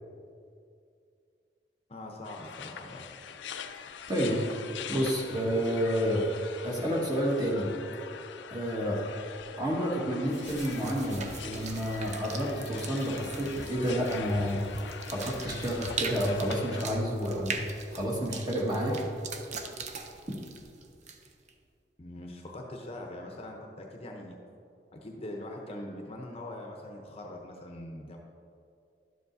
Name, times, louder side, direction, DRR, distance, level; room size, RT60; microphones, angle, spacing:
voice 1, 1.9-3.1 22.0-24.4 24.9-28.2, left 1 dB, 35° left, 1 dB, 0.7 m, -42 dB
sound 1, 2.3-16.9, left 7 dB, 85° left, 0.4 m, -43 dB
voice 2, 4.1-4.4 4.9-6.3 6.6-7.7 8.5-9.0 9.6-14.6 15.1-19.0, equal, 25° right, -4 dB, 1.5 m, -29 dB
sound 2, 10.3-21.5, right 5 dB, 40° right, 0.6 m, -41 dB
11.5 x 7.3 x 2.7 m, 2.4 s
head